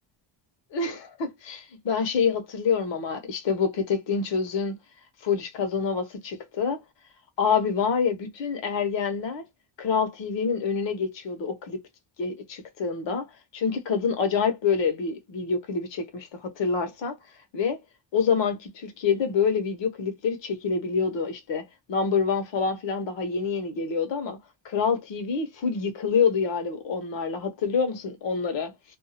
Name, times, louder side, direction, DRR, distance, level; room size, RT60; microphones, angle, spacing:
voice 1, 0.7-4.7 5.2-6.8 7.4-9.4 9.8-11.8 12.2-17.2 17.5-17.8 18.1-24.4 24.6-28.7, left 5 dB, 70° left, 1.1 m, -27 dB
2.6 x 2.3 x 2.7 m
cardioid pair, 120°, 46 cm